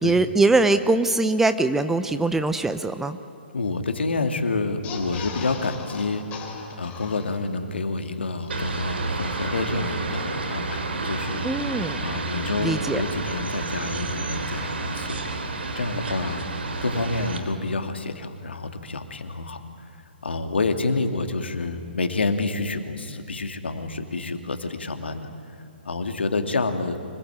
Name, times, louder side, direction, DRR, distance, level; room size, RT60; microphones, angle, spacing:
voice 1, 0.0-3.2 11.4-12.0 12.6-13.0, right 3 dB, 5° right, 10 dB, 0.7 m, -22 dB
voice 2, 3.5-6.2 6.8-11.5 12.0-15.2 15.7-16.4 16.8-19.9 20.2-25.3 25.8-27.0, left 3 dB, 70° left, 7 dB, 2.4 m, -28 dB
sound 1, 4.8-7.7 8.1-8.2 8.4-8.5, left 5 dB, 25° left, 3.7 m, -38 dB
sound 2, 8.5-17.4, right 3 dB, 70° right, 3.3 m, -30 dB
25.0 x 20.5 x 9.0 m, 2.5 s
figure-of-eight pair, 130°, 6 cm